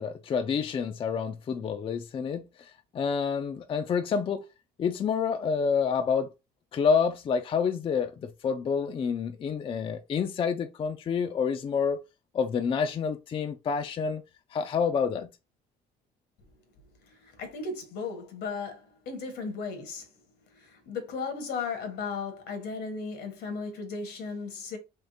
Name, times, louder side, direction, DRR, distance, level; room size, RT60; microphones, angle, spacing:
voice 1, 0.0-4.4 4.8-6.3 6.7-12.0 12.3-14.2 14.5-15.3, left 6 dB, 30° left, 0.4 m, -28 dB
voice 2, 17.1-20.1 20.5-24.8, left 4 dB, 80° left, 1.3 m, -36 dB
3.6 x 3.1 x 2.6 m
cardioid pair, 110°, 17 cm